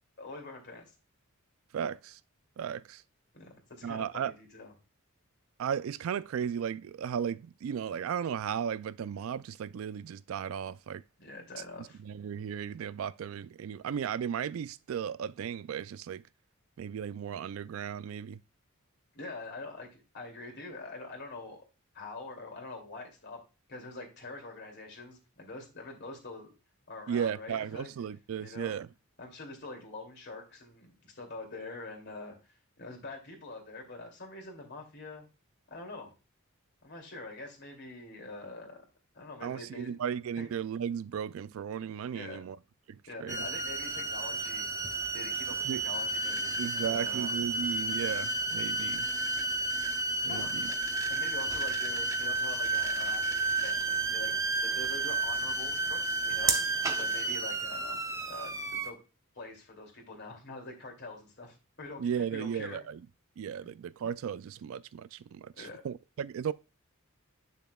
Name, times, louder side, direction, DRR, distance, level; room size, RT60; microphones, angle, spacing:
voice 1, 0.2-0.9 3.3-4.7 11.2-12.0 19.1-21.6 21.9-23.4 23.7-26.5 26.9-27.9 28.4-28.8 29.2-35.2 35.7-36.1 36.8-38.8 39.1-39.9 40.4-40.5 42.1-42.4 43.1-44.7 45.1-46.5 46.8-47.3 50.3-50.8 51.1-58.0 58.3-59.0 59.3-62.8 63.6-63.7 65.6-65.8, left 2 dB, 50° left, 2.6 m, -45 dB
voice 2, 1.7-2.2 2.6-3.0 3.8-4.3 5.6-11.0 12.0-16.2 16.8-18.4 27.1-28.9 39.4-42.6 42.9-43.4 45.7-45.8 46.6-49.1 50.2-50.7 62.0-63.0 63.4-66.5, right 8 dB, 65° right, 0.3 m, -35 dB
sound 1, 43.3-58.9, right 3 dB, 15° right, 0.6 m, -31 dB
8.4 x 6.6 x 2.3 m
head